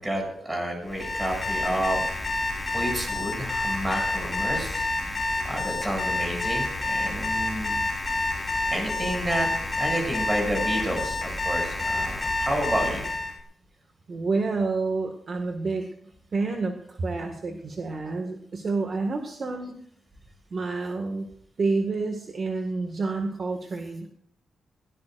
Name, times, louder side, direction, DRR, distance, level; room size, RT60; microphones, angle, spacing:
voice 1, 0.0-2.1 2.7-4.9 5.4-7.8 8.7-9.5 9.8-13.1, right 1 dB, 15° right, 2 dB, 7.2 m, -30 dB
Alarm, 0.9-13.3, left 2 dB, 15° left, 4.3 m, -28 dB
voice 2, 14.1-19.7 20.5-21.3 21.6-24.1, right 3 dB, 40° right, 4 dB, 1.9 m, -29 dB
21.5 x 18.0 x 2.6 m, 0.67 s
wide cardioid pair, 145°, 0 cm